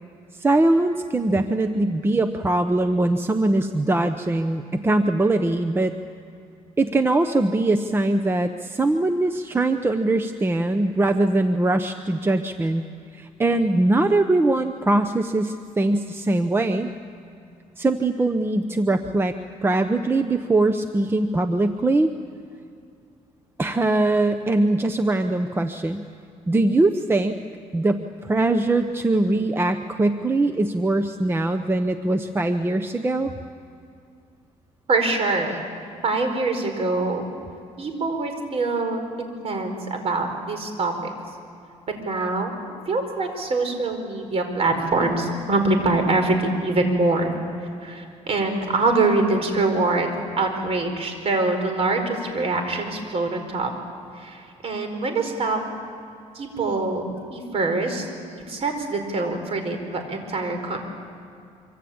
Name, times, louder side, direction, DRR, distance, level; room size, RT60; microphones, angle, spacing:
voice 1, 0.4-5.9 6.8-12.9 13.1-16.9 17.8-19.3 19.6-22.1 23.6-26.0 26.5-27.4 27.7-33.3, right 2 dB, 15° right, 8 dB, 0.9 m, -22 dB
voice 2, 34.9-35.6 36.0-37.3 37.8-41.1 42.0-42.5 42.9-47.4 47.8-53.7 54.1-55.6 56.3-58.1 58.5-60.8, right 3 dB, 50° right, 5 dB, 5.0 m, -24 dB
25.5 x 25.0 x 8.8 m, 2.5 s
cardioid pair, 120°, 13 cm